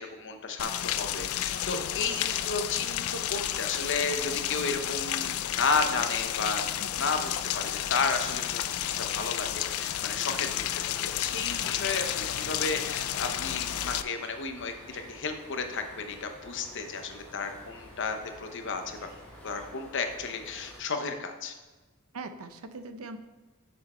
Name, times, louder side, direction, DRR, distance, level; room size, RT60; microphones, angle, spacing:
voice 1, 0.0-6.7 7.0-10.5 11.0-19.0 19.4-21.5, left 4 dB, 60° left, 6 dB, 0.9 m, -33 dB
Rain, 0.6-14.0, left 11 dB, 90° left, 0.4 m, -31 dB
voice 2, 1.7-2.0 4.6-4.8 6.8-7.1 10.3-10.5 11.6-11.8 22.1-23.2, right 3 dB, 85° right, 10 dB, 0.6 m, -43 dB
Bird vocalization bird call bird song, 6.4-19.7, right 1 dB, 35° right, 2.5 m, -54 dB
sound 1, 12.8-20.8, left 1 dB, 5° left, 1.3 m, -51 dB
6.8 x 6.4 x 4.3 m, 1.2 s
head